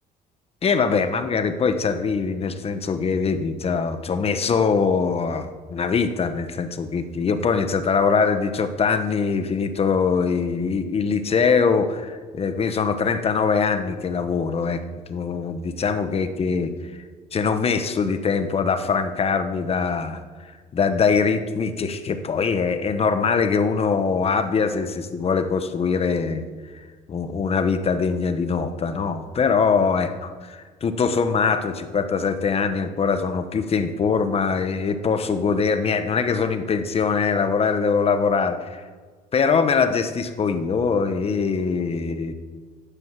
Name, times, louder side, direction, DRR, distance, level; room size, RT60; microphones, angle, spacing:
voice 1, 0.6-14.8 15.1-16.7 17.3-20.2 20.7-26.4 27.1-38.8 39.3-42.3, left 5 dB, 35° left, 9 dB, 1.1 m, -22 dB
10.5 x 9.1 x 7.5 m, 1.5 s
cardioid pair, 110°, 17 cm